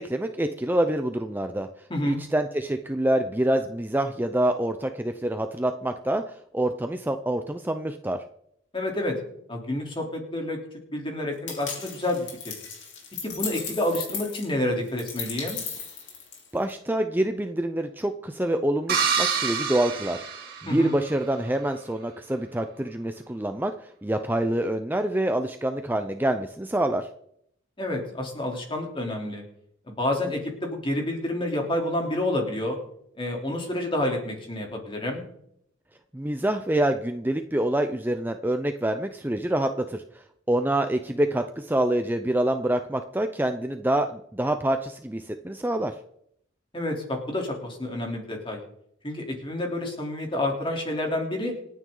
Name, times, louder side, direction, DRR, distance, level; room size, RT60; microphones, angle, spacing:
voice 1, 0.0-8.2 16.5-20.2 20.6-27.1 36.1-46.0, right 1 dB, 10° right, 7 dB, 0.5 m, -26 dB
voice 2, 8.7-9.2 9.5-10.6 10.9-12.5 13.2-15.6 20.7-20.9 27.8-29.4 29.9-32.8 33.2-35.2 46.7-48.6 49.0-51.5, left 1 dB, 25° left, 1 dB, 3.3 m, -29 dB
sound 1, 11.5-16.7, left 6 dB, 65° left, 3.6 m, -36 dB
sound 2, 18.9-21.1, right 6 dB, 50° right, 2.7 m, -27 dB
27.5 x 9.3 x 3.9 m, 0.73 s
head